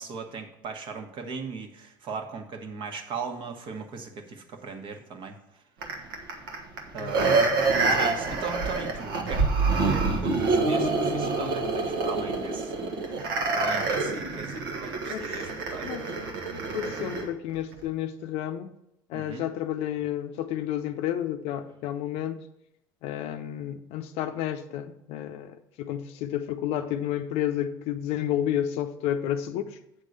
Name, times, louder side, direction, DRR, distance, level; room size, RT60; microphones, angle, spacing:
voice 1, 0.0-5.6 6.9-7.4 7.8-9.5 9.8-16.1 19.1-19.5, right 5 dB, 50° right, 4 dB, 1.2 m, -38 dB
sound 1, 5.8-17.3 17.7-17.8, right 3 dB, 80° right, 1.2 m, -26 dB
voice 2, 16.7-18.7 19.1-22.4 23.0-29.8, left 11 dB, 60° left, 9 dB, 0.6 m, -31 dB
8.1 x 3.7 x 6.6 m, 0.81 s
hypercardioid pair, 80°, 11 cm